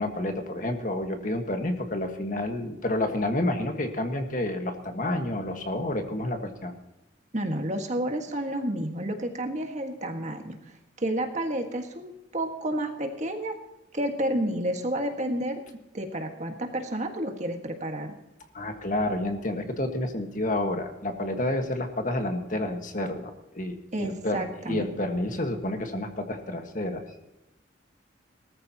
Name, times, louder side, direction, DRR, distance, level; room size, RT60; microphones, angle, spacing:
voice 1, 0.0-6.7 18.5-27.0, left 1 dB, 40° left, 5 dB, 1.6 m, -29 dB
voice 2, 7.3-10.6 11.0-13.6 13.9-15.6 15.9-18.1 23.9-24.8, right 1 dB, 35° right, 4 dB, 1.7 m, -30 dB
19.5 x 14.0 x 2.9 m, 0.97 s
head